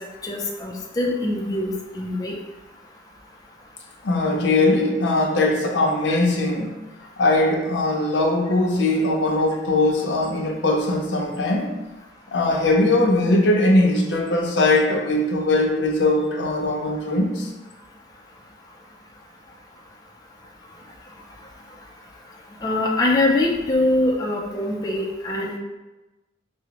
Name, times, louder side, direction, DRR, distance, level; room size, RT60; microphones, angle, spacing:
voice 1, 0.2-2.4 6.1-6.2 22.6-25.6, left 2 dB, 20° left, -2 dB, 0.3 m, -23 dB
voice 2, 4.0-6.7 7.2-11.7 12.3-17.5, left 2 dB, 85° left, 1 dB, 0.6 m, -20 dB
4.9 x 2.0 x 2.8 m, 1.1 s
head